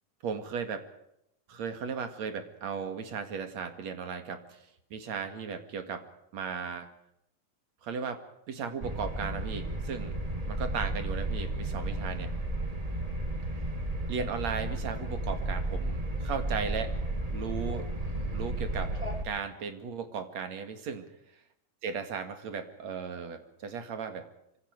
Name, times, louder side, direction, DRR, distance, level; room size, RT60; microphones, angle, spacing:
voice 1, 0.2-0.8 1.5-4.6 4.9-6.0 6.3-6.9 7.8-8.2 8.5-10.1 10.5-12.3 14.1-16.9 17.3-17.9 18.3-18.9 19.2-21.1 21.8-24.2, right 6 dB, 65° right, 8 dB, 3.2 m, -36 dB
sound 1, 8.8-19.2, right 1 dB, 15° right, 1.7 m, -33 dB
26.5 x 25.5 x 4.7 m, 0.79 s
omnidirectional pair, 3.4 m